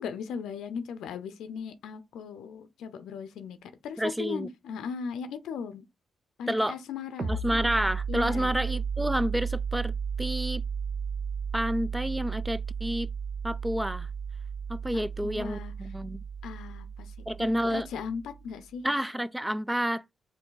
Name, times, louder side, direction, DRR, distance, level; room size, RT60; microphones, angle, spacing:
voice 1, 0.0-5.9 6.4-7.4 8.1-8.5 14.9-15.7 16.4-18.8, left 6 dB, 85° left, 0.5 m, -38 dB
voice 2, 4.0-4.5 6.5-6.8 7.3-9.9 10.2-10.6 11.5-13.1 13.4-14.1 14.7-16.2 17.3-17.9 18.8-20.1, equal, 10° right, 0.3 m, -29 dB
sound 1, 7.2-18.5, right 6 dB, 60° right, 0.9 m, -34 dB
4.6 x 2.7 x 3.9 m
supercardioid pair, 60°, 0 cm